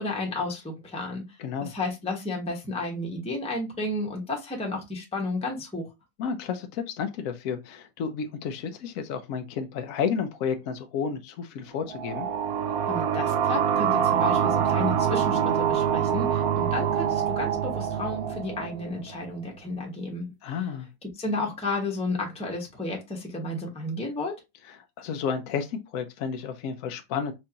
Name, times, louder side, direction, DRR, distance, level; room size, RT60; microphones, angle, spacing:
voice 1, 0.0-1.2 1.6-5.9 12.8-20.7 21.2-24.3, left 2 dB, 5° left, 0.7 m, -32 dB
voice 2, 1.4-1.7 6.2-12.3 20.4-20.9 25.0-27.3, left 6 dB, 70° left, 0.9 m, -31 dB
sound 1, 11.9-19.3, right 8 dB, 70° right, 0.9 m, -25 dB
4.5 x 2.5 x 2.8 m
omnidirectional pair, 1.8 m